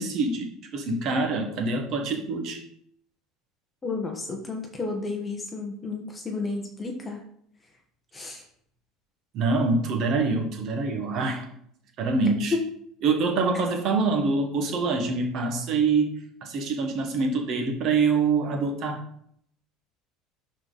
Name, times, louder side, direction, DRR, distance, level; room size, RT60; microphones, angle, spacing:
voice 1, 0.0-2.6 9.3-11.5 12.0-12.5 13.0-16.1 16.4-19.0, right 4 dB, 40° right, 3 dB, 1.5 m, -25 dB
voice 2, 3.8-7.2 8.1-8.4, left 3 dB, 15° left, 2 dB, 1.2 m, -32 dB
11.5 x 4.5 x 4.1 m, 0.67 s
cardioid pair, 170°, 0 cm